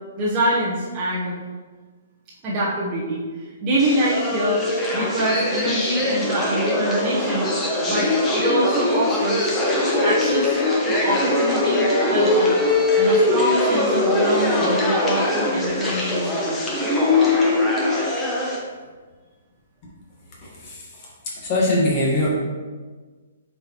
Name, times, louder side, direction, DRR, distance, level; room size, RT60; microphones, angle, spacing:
voice 1, 0.2-1.3 2.4-4.6 4.9-7.5 7.9-9.5 10.0-10.6 10.9-12.5 13.0-16.6, right 1 dB, 20° right, -9 dB, 0.9 m, -24 dB
sound 1, 3.8-18.6, left 2 dB, 10° left, 0.8 m, -21 dB
voice 2, 20.4-20.8 21.4-22.3, left 1 dB, 25° left, -4 dB, 1.5 m, -21 dB
7.4 x 4.4 x 3.0 m, 1.4 s
hypercardioid pair, 170°, 0 cm